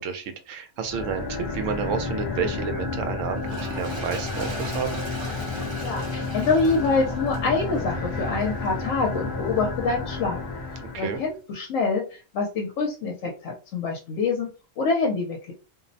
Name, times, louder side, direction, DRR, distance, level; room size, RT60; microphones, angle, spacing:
voice 1, 0.0-5.0 10.8-11.2, right 6 dB, 80° right, 7 dB, 0.9 m, -30 dB
sound 1, 0.8-11.3, left 3 dB, 55° left, 0.6 m, -31 dB
Toilet flush, 3.4-8.9 9.5-9.7, right 2 dB, 30° right, 0.6 m, -40 dB
voice 2, 5.8-10.4 11.0-14.5 14.8-15.5, left 4 dB, 85° left, 0 dB, 1.0 m, -26 dB
2.5 x 2.0 x 2.6 m, 0.35 s
omnidirectional pair, 1.3 m